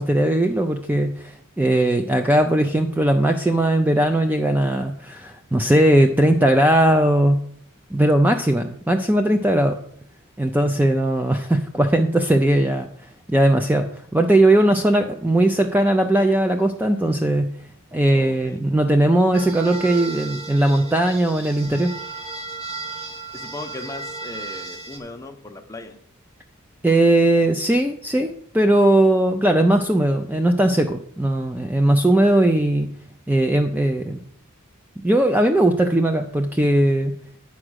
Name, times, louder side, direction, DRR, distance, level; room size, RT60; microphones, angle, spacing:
voice 1, 0.0-7.4 7.9-9.8 10.4-12.9 13.3-17.5 17.9-21.9 26.8-32.9 33.3-34.2 35.0-37.2, right 1 dB, 10° right, 6 dB, 0.4 m, -19 dB
voice 2, 18.1-18.6 23.3-26.0, left 2 dB, 15° left, 5 dB, 0.8 m, -37 dB
sound 1, 19.3-25.0, right 4 dB, 30° right, 1.6 m, -35 dB
9.7 x 4.9 x 6.3 m, 0.64 s
head